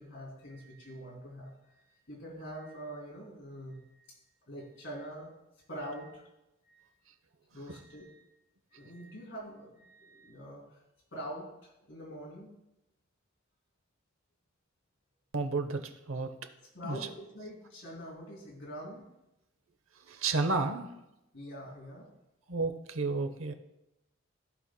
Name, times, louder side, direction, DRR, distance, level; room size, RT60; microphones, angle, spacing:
voice 1, 0.0-4.1 4.5-5.3 5.7-6.3 6.6-6.9 7.5-8.3 8.7-10.8 11.1-12.5 16.7-19.0 21.3-22.1, equal, 60° left, -3 dB, 2.9 m, -45 dB
voice 2, 15.3-16.3 16.8-17.0 20.1-20.9 22.5-23.5, right 3 dB, 85° right, 8 dB, 0.8 m, -31 dB
15.5 x 5.4 x 2.2 m, 0.91 s
head